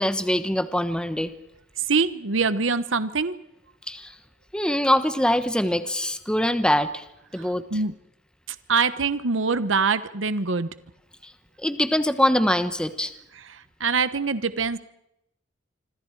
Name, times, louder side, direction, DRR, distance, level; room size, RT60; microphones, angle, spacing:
voice 1, 0.0-1.3 3.9-4.1 4.5-7.1 7.3-7.7 11.2-11.3 11.6-13.1, left 1 dB, 5° left, 10 dB, 1.2 m, -23 dB
voice 2, 1.8-3.4 7.3-7.9 8.5-10.7 13.4-14.8, right 4 dB, 90° right, 13 dB, 1.1 m, -24 dB
27.0 x 26.0 x 4.8 m, 0.84 s
head